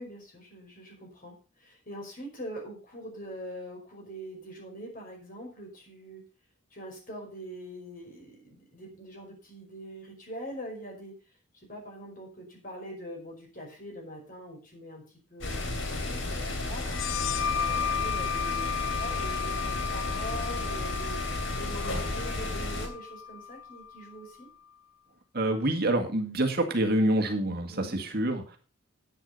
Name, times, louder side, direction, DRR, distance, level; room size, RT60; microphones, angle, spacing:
voice 1, 0.0-6.2 6.7-24.5 27.7-28.0, equal, 45° left, 1 dB, 5.3 m, -43 dB
sound 1, 15.4-22.9, left 2 dB, 70° left, 3.3 m, -33 dB
sound 2, 16.8-24.2, left 7 dB, 90° left, 0.7 m, -34 dB
voice 2, 25.3-28.6, right 1 dB, 50° right, 5 dB, 2.0 m, -27 dB
10.5 x 9.6 x 5.4 m, 0.34 s
head